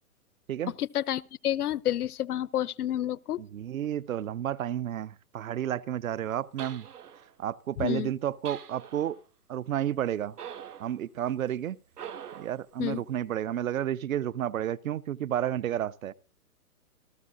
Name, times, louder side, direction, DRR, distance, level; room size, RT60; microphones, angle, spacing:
voice 1, 0.8-3.4 7.8-8.1 12.8-13.0, left 12 dB, 80° left, 0.7 m, -29 dB
voice 2, 3.4-6.9 7.4-9.2 9.5-10.4 10.8-11.8 12.4-16.1, right 11 dB, 65° right, 0.6 m, -31 dB
sound 1, 6.6-7.3 8.5-9.2 10.4-11.0 11.9-12.6, right 8 dB, 85° right, 1.8 m, -43 dB
28.0 x 13.0 x 2.5 m
hypercardioid pair, 170°, 45 cm